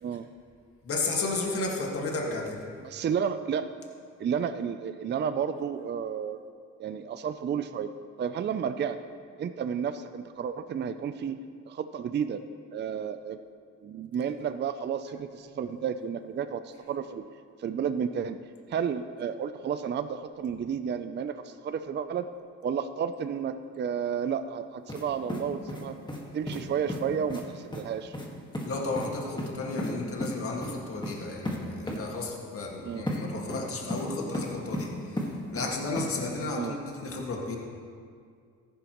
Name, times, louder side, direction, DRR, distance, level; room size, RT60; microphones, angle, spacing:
voice 1, 0.8-2.7 28.6-35.2 35.5-37.6, left 3 dB, 50° left, 0 dB, 1.9 m, -33 dB
voice 2, 2.8-3.7 4.2-6.4 6.8-7.9 8.2-9.0 9.4-11.4 11.7-12.4 12.7-13.4 13.8-17.2 17.6-18.4 18.7-22.3 22.6-25.9 26.3-28.2 32.8-33.1 36.5-36.8, right 7 dB, 35° right, 10 dB, 0.4 m, -31 dB
sound 1, 24.9-25.0 25.3-26.2 26.5-26.6 26.9-27.0 27.3-27.4 27.7-27.8 28.1-28.3 28.5-28.7 29.0-29.1 29.4-29.9 30.2-30.3 30.6-30.7 31.0-31.2 31.5-31.6 31.9-32.0 33.1-33.2 33.5-34.1 34.3-34.9 35.2-35.7 36.0-36.1, left 1 dB, 15° left, 1.7 m, -33 dB
14.5 x 11.0 x 3.0 m, 2.2 s
cardioid pair, 90°, 30 cm